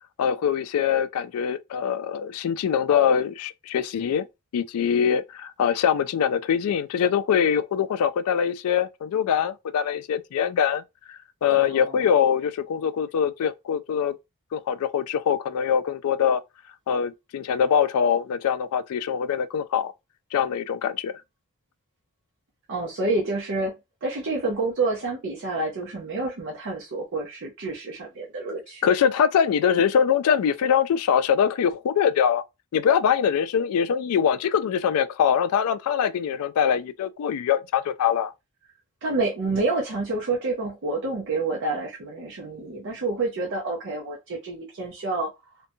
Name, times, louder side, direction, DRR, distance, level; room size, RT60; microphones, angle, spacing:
voice 1, 0.2-4.2 4.5-10.8 11.1-14.1 14.5-16.4 16.9-19.9 20.3-21.1 28.8-32.4 32.7-38.3, left 8 dB, 80° left, 0.3 m, -23 dB
voice 2, 11.5-12.3 22.7-23.7 24.0-29.0 39.0-45.3, right 3 dB, 60° right, 0.6 m, -28 dB
2.6 x 2.2 x 2.6 m
head